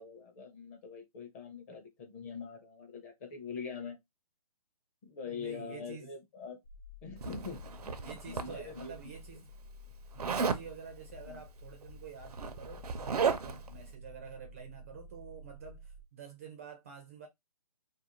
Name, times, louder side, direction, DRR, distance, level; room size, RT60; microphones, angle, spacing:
voice 1, 0.0-4.0 5.0-6.6 7.0-9.1 11.3-11.4 13.4-13.6, left 5 dB, 25° left, 0.6 m, -44 dB
voice 2, 5.3-6.1 8.0-9.5 10.1-17.3, right 6 dB, 25° right, 0.4 m, -49 dB
sound 1, 6.6-16.0, left 2 dB, 70° left, 0.8 m, -52 dB
Zipper (clothing), 7.2-8.9 10.2-10.7 11.8-11.9 12.2-13.7, right 6 dB, 75° right, 0.5 m, -34 dB
2.5 x 2.1 x 2.9 m
hypercardioid pair, 150°, 20 cm